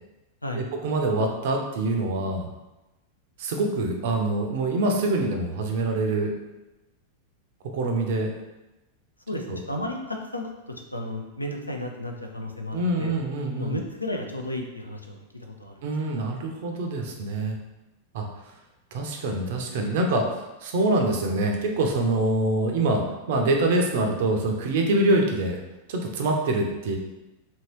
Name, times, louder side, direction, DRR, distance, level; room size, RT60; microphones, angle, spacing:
voice 1, 0.5-2.5 3.4-6.3 7.7-8.3 9.5-9.6 12.7-13.8 15.8-17.6 18.1-18.3 18.9-20.2 20.6-23.0 23.3-25.6 25.9-27.0, right 2 dB, 55° right, 2 dB, 0.5 m, -25 dB
voice 2, 9.3-13.1 13.6-15.7 16.1-16.2, left 1 dB, 85° left, 3 dB, 0.4 m, -33 dB
2.8 x 2.7 x 3.0 m, 1.0 s
figure-of-eight pair, 90°, 0 cm